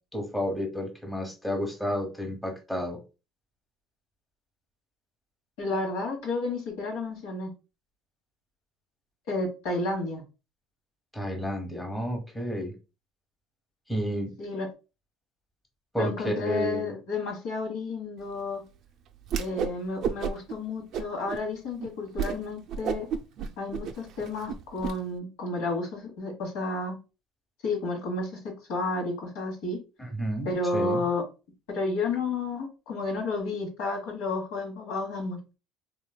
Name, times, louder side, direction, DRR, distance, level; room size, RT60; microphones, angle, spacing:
voice 1, 0.1-3.0 11.1-12.7 13.9-14.3 15.9-16.9 30.0-31.0, equal, 5° left, 1.0 m, -31 dB
voice 2, 5.6-7.5 9.3-10.2 14.4-14.7 16.0-18.6 19.4-23.1 23.6-27.0 27.6-29.8 30.4-31.2 31.7-35.4, left 3 dB, 85° left, 1.3 m, -31 dB
Whoosh swoosh swish, 19.2-19.8 20.0-20.5 20.9-21.4 21.8-21.9 22.2-22.4 22.7-24.9, right 7 dB, 60° right, 0.4 m, -31 dB
3.1 x 3.1 x 2.2 m
supercardioid pair, 90°, 0 cm